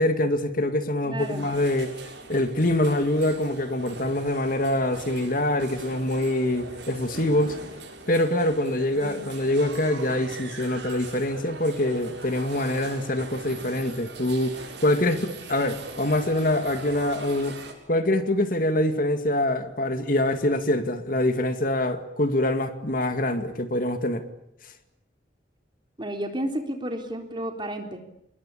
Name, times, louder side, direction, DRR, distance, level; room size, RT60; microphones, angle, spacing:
voice 1, 0.0-1.9 2.3-7.6 8.1-17.6 17.9-24.2 24.6-24.7, left 1 dB, 50° left, 8 dB, 2.2 m, -25 dB
voice 2, 1.0-1.5 9.0-9.3 15.0-15.3 26.0-28.0, right 1 dB, 25° right, 4 dB, 3.9 m, -32 dB
sound 1, 1.2-17.7, right 3 dB, 80° right, 7.2 m, -41 dB
27.5 x 21.5 x 8.6 m, 0.78 s
head